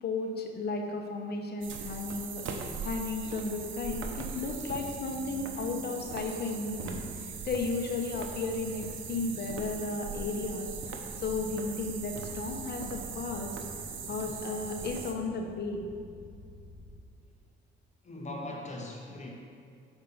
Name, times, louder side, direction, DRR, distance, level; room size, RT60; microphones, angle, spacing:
voice 1, 0.0-13.5 14.1-15.8, left 3 dB, 55° left, 3 dB, 1.1 m, -34 dB
sound 1, 1.6-15.1, right 6 dB, 75° right, 0.9 m, -40 dB
sound 2, 3.3-17.0, equal, 15° right, 1.4 m, -50 dB
voice 2, 18.0-19.3, left 1 dB, 35° left, -1 dB, 1.3 m, -40 dB
7.1 x 5.1 x 5.6 m, 2.4 s
cardioid pair, 90°, 20 cm